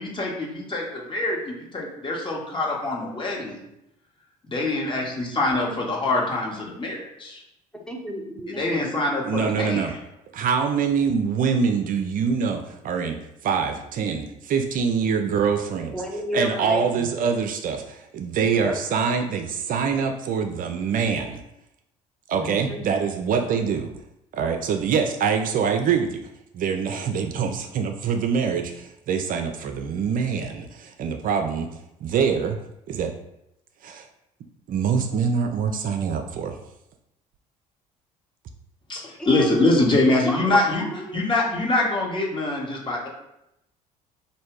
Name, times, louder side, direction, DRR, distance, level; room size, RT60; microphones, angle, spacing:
voice 1, 0.0-3.6 4.5-7.4 8.5-9.9 38.9-40.8 41.1-43.1, left 2 dB, 30° left, -2 dB, 1.5 m, -24 dB
voice 2, 7.7-8.9 15.9-17.3 18.6-18.8 22.3-22.8 39.2-39.7 40.2-41.2, left 1 dB, 5° left, 0 dB, 1.0 m, -32 dB
voice 3, 9.3-9.9 10.3-16.0 16.3-21.4 22.3-23.9 24.3-26.3 26.5-31.7 32.0-32.6 32.9-33.1 33.8-34.1 34.7-36.6, right 6 dB, 55° right, 6 dB, 0.5 m, -24 dB
3.2 x 2.7 x 4.6 m, 0.85 s
hypercardioid pair, 65°, 17 cm